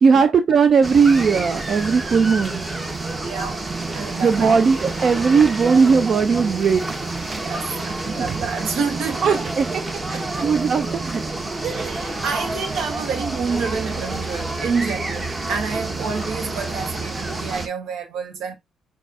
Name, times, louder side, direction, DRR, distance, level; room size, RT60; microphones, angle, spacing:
voice 1, 0.0-2.6 4.2-6.8 8.2-8.4 9.2-9.7 10.2-11.2 11.5-11.6, right 5 dB, 50° right, 0.4 m, -18 dB
sound 1, 0.8-17.7, right 2 dB, 25° right, 1.1 m, -28 dB
voice 2, 3.2-4.6 7.3-9.7 10.1-10.5 11.6-18.6, right 5 dB, 80° right, 1.2 m, -28 dB
5.9 x 2.3 x 2.6 m
cardioid pair, 90°, 0 cm